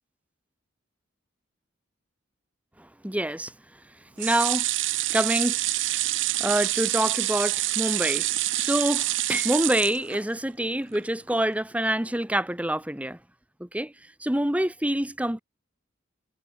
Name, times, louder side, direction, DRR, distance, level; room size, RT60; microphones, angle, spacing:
voice 1, 2.8-3.5 4.2-4.7 5.1-5.6 6.4-8.3 8.5-13.2 13.6-13.9 14.2-15.4, right 1 dB, 5° right, 1.3 m, -26 dB
sound 1, 4.2-10.5 10.9-11.0 11.3-11.4, right 16 dB, 65° right, 0.9 m, -27 dB
head